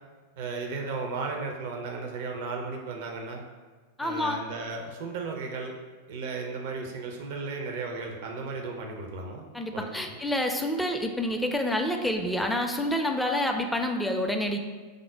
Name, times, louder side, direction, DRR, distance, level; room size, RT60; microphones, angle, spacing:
voice 1, 0.4-3.4 4.0-5.7 6.1-9.4 9.7-10.2, right 4 dB, 50° right, 2 dB, 0.5 m, -35 dB
voice 2, 4.0-4.4 9.5-14.6, left 1 dB, 5° left, 3 dB, 0.4 m, -28 dB
4.9 x 2.0 x 4.4 m, 1.4 s
figure-of-eight pair, 90°, 0 cm